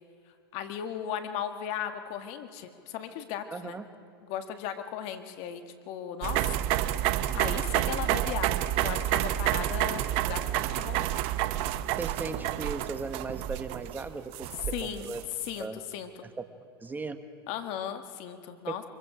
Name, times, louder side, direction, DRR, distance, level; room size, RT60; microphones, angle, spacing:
voice 1, 0.5-3.7 4.2-6.6 7.3-11.1 14.7-15.1 15.4-16.2 17.5-18.8, left 9 dB, 50° left, 8 dB, 1.8 m, -37 dB
voice 2, 3.5-3.8 11.9-15.2 15.6-15.8 16.2-16.4 16.8-17.2 18.7-18.8, right 4 dB, 15° right, 9 dB, 1.4 m, -37 dB
sound 1, 6.2-15.5, right 13 dB, 50° right, 0.8 m, -29 dB
24.5 x 22.5 x 5.0 m, 2.4 s
hypercardioid pair, 105°, 13 cm